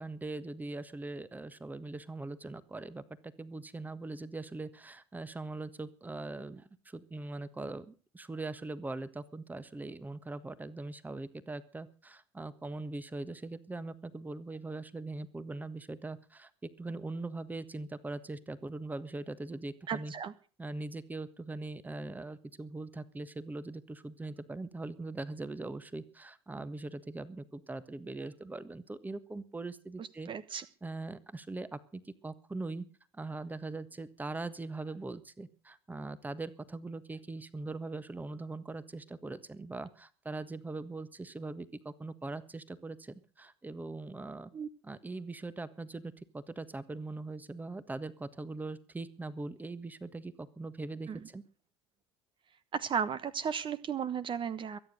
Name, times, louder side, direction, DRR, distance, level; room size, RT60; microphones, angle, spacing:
voice 1, 0.0-20.1 20.6-32.9 33.1-44.5 44.8-51.4, right 2 dB, 10° right, 15 dB, 1.4 m, -41 dB
voice 2, 19.9-20.3 30.0-30.6 44.5-44.7 51.1-51.2 52.7-54.8, right 7 dB, 35° right, 15 dB, 1.2 m, -35 dB
22.5 x 9.7 x 6.5 m, 0.40 s
hypercardioid pair, 70°, 14 cm